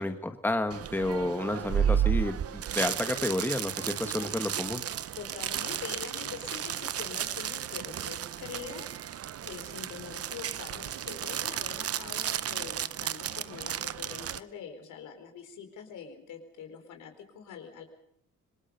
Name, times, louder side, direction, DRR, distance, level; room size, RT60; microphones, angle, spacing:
voice 1, 0.0-4.8, left 1 dB, 5° left, 7 dB, 1.5 m, -31 dB
sound 1, 0.7-14.4, right 9 dB, 50° right, 0.8 m, -33 dB
voice 2, 5.1-8.9 9.4-17.8, left 7 dB, 80° left, 5 dB, 4.5 m, -44 dB
26.5 x 20.5 x 5.4 m, 0.73 s
cardioid pair, 90°, 30 cm